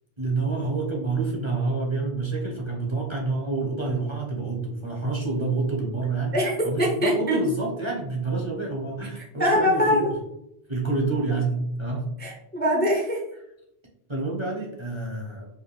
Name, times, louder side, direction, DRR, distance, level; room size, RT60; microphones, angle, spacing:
voice 1, 0.2-6.3 6.6-10.0 10.7-12.1 14.1-15.5, right 3 dB, 30° right, -2 dB, 0.9 m, -28 dB
voice 2, 6.3-7.4 9.2-10.1 12.2-13.2, left 1 dB, 10° left, -2 dB, 0.6 m, -23 dB
4.8 x 2.5 x 3.3 m, 0.79 s
omnidirectional pair, 1.1 m